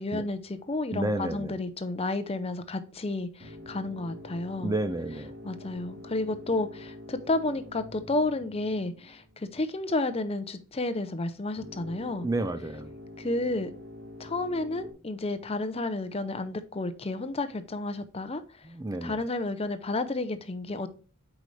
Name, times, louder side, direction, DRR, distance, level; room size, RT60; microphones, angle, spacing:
voice 1, 0.0-4.7 5.4-12.3 13.2-13.7 14.2-18.7 19.0-20.9, left 2 dB, 30° left, 0.6 m, -31 dB
voice 2, 0.9-1.5 4.6-5.4 12.2-12.9 18.6-19.2, right 2 dB, 15° right, 0.4 m, -31 dB
sound 1, 3.4-9.7 11.6-14.9, left 1 dB, 55° right, 3.6 m, -46 dB
8.0 x 5.0 x 3.2 m
head